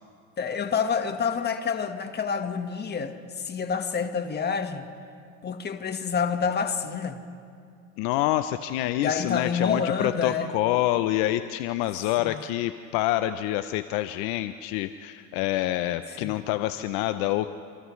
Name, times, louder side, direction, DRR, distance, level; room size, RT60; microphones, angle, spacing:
voice 1, 0.4-4.9 5.4-7.2 9.0-10.5 12.2-12.4 16.1-16.4, left 6 dB, 25° left, 7 dB, 1.6 m, -28 dB
voice 2, 8.0-17.5, left 14 dB, 60° left, 11 dB, 0.8 m, -27 dB
29.5 x 27.5 x 3.3 m, 2.3 s
supercardioid pair, 110°, 41 cm